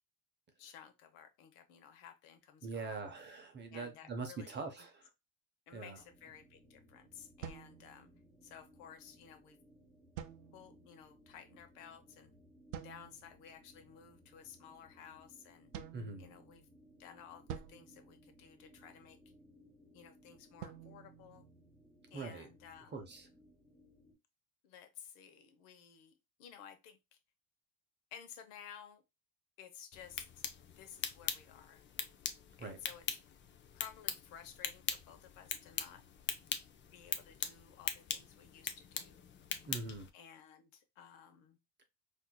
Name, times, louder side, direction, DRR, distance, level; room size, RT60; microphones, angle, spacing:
voice 1, 0.6-3.0 3.7-4.6 5.7-8.1 8.4-9.6 10.5-12.3 12.8-15.7 16.2-16.7 17.0-19.2 19.9-21.5 22.1-23.0 24.6-26.1 26.4-27.2 28.1-29.0 29.6-30.4 30.8-31.8 32.6-33.2 33.7-36.0 36.9-39.3 40.1-41.6, left 8 dB, 75° left, 1.0 m, -55 dB
voice 2, 2.6-5.1 5.7-6.0 15.9-16.3 22.1-22.5 22.9-23.3 32.6-32.8 39.6-40.1, right 4 dB, 25° right, 0.6 m, -43 dB
sound 1, 6.0-24.1, equal, 10° left, 1.0 m, -64 dB
sound 2, 7.4-8.5 10.2-11.0 12.7-13.4 15.7-16.8 17.5-19.0 20.6-22.1, right 9 dB, 85° right, 0.6 m, -50 dB
sound 3, 29.9-40.1, left 8 dB, 30° left, 0.4 m, -42 dB
4.4 x 2.6 x 2.2 m
supercardioid pair, 120°, 43 cm